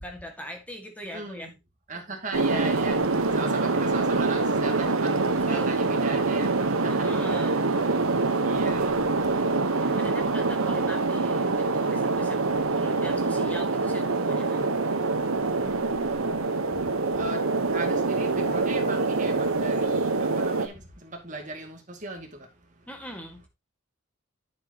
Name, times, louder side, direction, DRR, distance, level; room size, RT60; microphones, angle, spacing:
voice 1, 0.0-1.5 5.5-5.7 6.9-7.6 9.8-12.4 12.7-14.7 22.9-23.5, equal, 5° left, 1.9 m, -41 dB
voice 2, 1.1-1.5 1.9-7.6 8.4-9.1 15.6-16.4 16.7-22.5 22.8-22.9, right 2 dB, 35° right, 2.3 m, -39 dB
sound 1, 2.3-20.7, right 3 dB, 85° right, 1.2 m, -25 dB
9.9 x 7.7 x 2.9 m
head